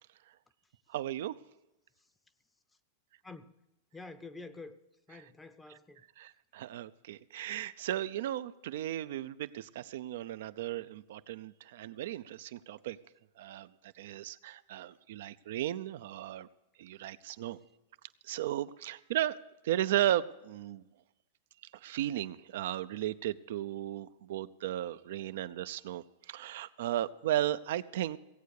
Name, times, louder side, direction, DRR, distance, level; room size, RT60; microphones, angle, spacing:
voice 1, 0.9-1.3 5.1-5.2 5.7-5.8 6.2-13.0 13.4-16.5 16.8-17.6 18.2-19.4 19.6-20.8 21.7-28.2, right 12 dB, 70° right, 0.6 m, -35 dB
voice 2, 3.9-4.8 5.1-6.0, left 3 dB, 10° left, 0.7 m, -48 dB
17.0 x 8.3 x 6.6 m
hypercardioid pair, 125°, 0 cm